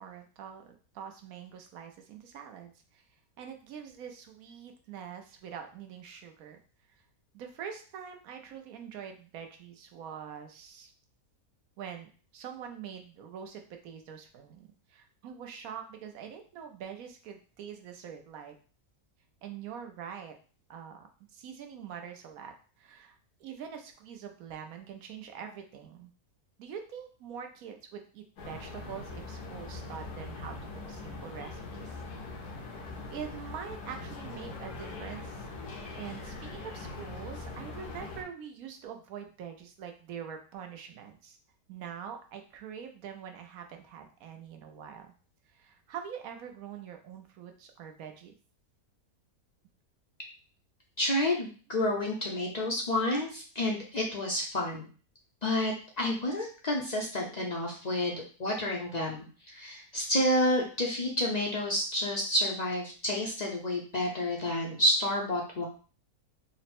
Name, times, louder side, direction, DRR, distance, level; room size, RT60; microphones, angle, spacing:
voice 1, 0.0-3.0 3.4-6.6 7.3-10.9 11.8-18.6 19.4-20.3 20.7-22.5 22.8-23.1 23.4-26.1 26.6-30.6 30.9-32.0 33.1-35.5 35.9-41.4 41.7-45.1 45.5-48.3, right 8 dB, 75° right, 5 dB, 1.1 m, -44 dB
sound 1, 28.4-38.2, left 3 dB, 90° left, 1.4 m, -42 dB
voice 2, 51.0-54.9 55.4-65.7, left 1 dB, 50° left, -1 dB, 0.5 m, -30 dB
4.0 x 2.1 x 4.2 m, 0.38 s
omnidirectional pair, 1.6 m